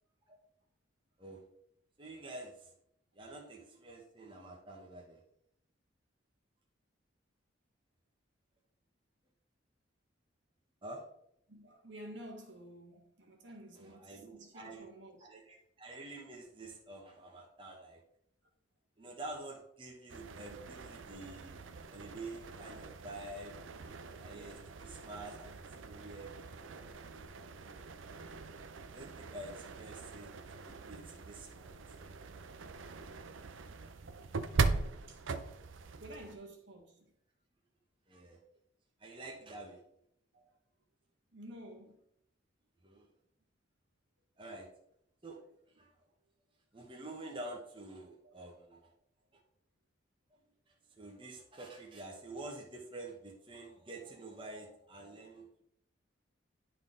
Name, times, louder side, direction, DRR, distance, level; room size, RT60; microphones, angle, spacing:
voice 1, 2.0-2.7 3.1-5.2 10.8-11.0 13.7-14.9 15.2-18.0 19.0-21.6 21.9-23.6 24.2-26.8 28.9-30.3 30.6-32.0 35.9-36.0 38.1-38.4 39.0-39.8 42.8-43.1 44.4-44.7 45.2-45.4 45.7-45.9 46.7-48.9 50.7-55.6, right 2 dB, 25° right, 1.0 m, -48 dB
voice 2, 11.5-15.5 24.1-24.3 30.2-30.3 33.7-34.1 35.1-35.2 36.0-37.1 40.3-40.6 41.3-42.0 48.2-48.3, right 1 dB, 70° right, 1.6 m, -51 dB
sound 1, 20.1-36.3, right 4 dB, 85° right, 0.5 m, -41 dB
11.0 x 4.0 x 3.8 m
head